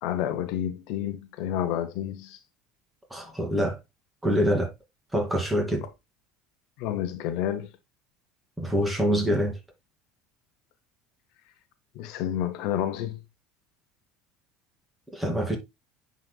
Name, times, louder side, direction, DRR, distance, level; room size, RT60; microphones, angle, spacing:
voice 1, 0.0-2.4 6.8-7.7 11.9-13.2, left 11 dB, 70° left, 0.8 m, -29 dB
voice 2, 3.1-3.8 4.2-4.7 5.1-5.9 8.6-9.6 15.1-15.6, equal, 10° right, 2.6 m, -25 dB
10.5 x 4.1 x 2.3 m
supercardioid pair, 95°, 0 cm